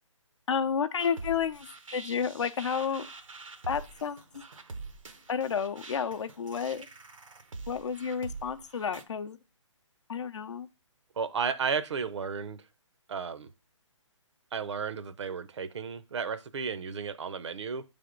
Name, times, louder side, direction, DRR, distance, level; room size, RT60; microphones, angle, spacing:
voice 1, 0.5-3.1 3.7-4.2 5.3-6.9 7.7-9.4 10.1-10.7, left 7 dB, 65° left, 0.6 m, -31 dB
sound 1, 1.0-9.0, right 3 dB, 90° right, 0.8 m, -45 dB
voice 2, 11.2-12.6 13.1-13.5 14.5-17.8, right 6 dB, 60° right, 0.6 m, -33 dB
7.5 x 3.5 x 3.7 m
hypercardioid pair, 150°, 16 cm